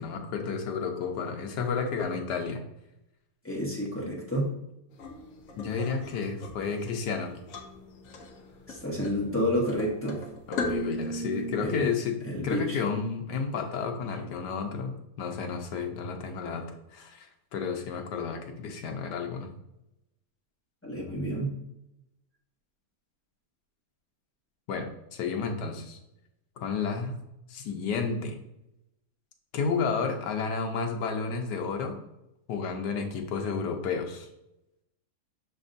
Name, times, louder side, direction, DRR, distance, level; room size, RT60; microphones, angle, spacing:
voice 1, 0.0-2.6 5.6-7.3 10.5-12.2 12.4-16.7 16.9-19.5 24.7-26.0 26.6-27.2 27.5-28.3 29.5-31.9 32.5-34.3, left 5 dB, 90° left, 4 dB, 1.3 m, -31 dB
voice 2, 3.4-4.5 8.7-10.2 11.6-11.9 12.2-12.8 20.8-21.5, equal, 20° left, -4 dB, 0.4 m, -30 dB
sound 1, 4.9-11.7, left 1 dB, 65° left, 1.1 m, -38 dB
6.1 x 3.4 x 2.5 m, 0.87 s
omnidirectional pair, 1.7 m